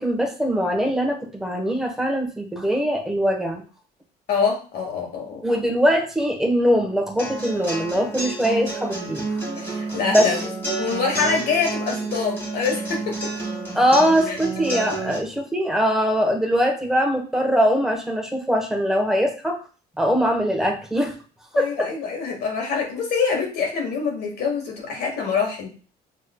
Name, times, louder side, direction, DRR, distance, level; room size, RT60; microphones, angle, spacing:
voice 1, 0.0-3.6 5.4-9.2 10.1-10.3 13.7-19.6 20.0-21.2 21.5-21.9, equal, 5° right, 2 dB, 1.0 m, -22 dB
voice 2, 4.3-5.4 9.6-10.4 10.8-13.3 14.3-14.4 21.5-25.7, left 5 dB, 75° left, 0 dB, 1.7 m, -25 dB
sound 1, 7.2-15.2, right 2 dB, 10° left, 1.6 m, -30 dB
6.4 x 3.1 x 2.2 m, 0.37 s
cardioid pair, 110°, 17 cm